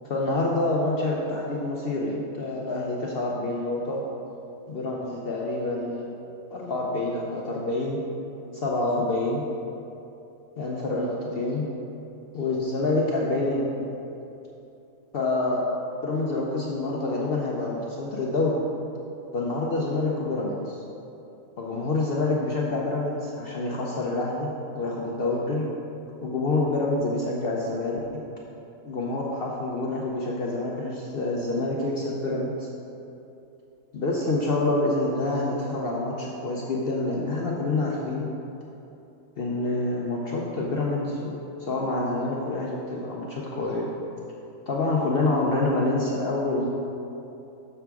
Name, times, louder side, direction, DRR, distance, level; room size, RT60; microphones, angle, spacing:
voice 1, 0.0-4.0 4.7-6.1 6.5-8.0 8.5-9.4 10.6-11.6 12.3-13.9 15.1-15.6 16.0-18.6 19.3-20.8 21.6-25.7 26.2-28.0 28.8-32.7 33.9-38.3 39.4-41.3 41.6-43.9 44.7-46.7, left 2 dB, 60° left, -3 dB, 0.7 m, -27 dB
6.7 x 6.0 x 3.4 m, 2.8 s
omnidirectional pair, 1.4 m